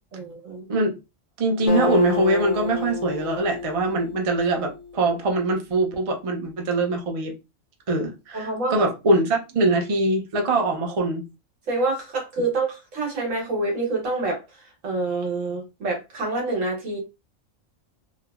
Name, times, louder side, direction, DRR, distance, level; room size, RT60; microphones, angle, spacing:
voice 1, 0.1-0.7 8.3-8.7 11.7-17.0, right 2 dB, 75° right, 1.5 m, -27 dB
voice 2, 1.4-7.3 7.9-11.2, right 2 dB, 45° right, 0.4 m, -23 dB
Acoustic guitar, 1.7-5.3, left 5 dB, 85° left, 1.0 m, -30 dB
3.2 x 2.0 x 2.3 m
omnidirectional pair, 1.4 m